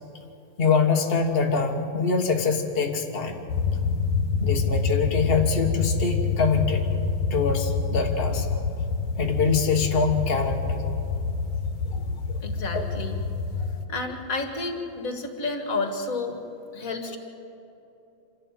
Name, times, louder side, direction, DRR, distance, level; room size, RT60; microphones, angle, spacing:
voice 1, 0.6-3.4 4.4-6.9 7.3-8.5 9.2-10.8 12.3-12.4 12.7-12.8, left 5 dB, 85° left, 2 dB, 0.5 m, -24 dB
sound 1, 3.5-13.9, left 4 dB, 70° left, 1.8 m, -27 dB
voice 2, 12.4-13.2 13.6-16.4 16.7-17.2, left 3 dB, 40° left, 5 dB, 1.4 m, -31 dB
27.0 x 12.5 x 8.9 m, 3.0 s
omnidirectional pair, 3.4 m